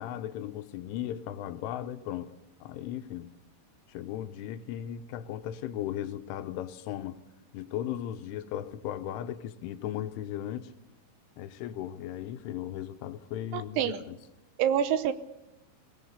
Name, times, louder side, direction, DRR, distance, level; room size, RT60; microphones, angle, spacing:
voice 1, 0.0-2.3 2.6-3.3 3.9-7.2 7.5-10.7 11.4-14.2, left 11 dB, 80° left, 3.3 m, -37 dB
voice 2, 13.5-14.0 14.6-15.1, right 9 dB, 80° right, 3.1 m, -26 dB
22.5 x 18.0 x 6.7 m
omnidirectional pair, 5.8 m